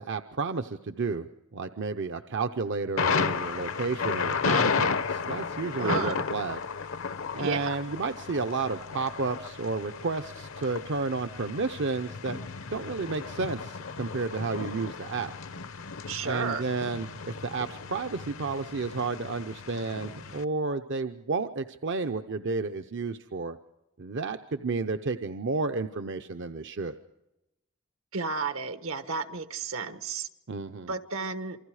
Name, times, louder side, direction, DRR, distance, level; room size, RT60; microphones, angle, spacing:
voice 1, 0.0-6.6 7.3-12.4 12.7-15.3 16.2-23.6 24.0-26.9 30.5-30.9, right 4 dB, 60° right, 8 dB, 0.7 m, -31 dB
Thunder, 3.0-20.4, left 5 dB, 70° left, 0.8 m, -33 dB
voice 2, 5.8-6.2 7.4-7.8 16.1-16.6 28.1-30.3 30.9-31.6, right 4 dB, 80° right, 10 dB, 1.3 m, -32 dB
28.0 x 25.0 x 4.9 m, 0.91 s
head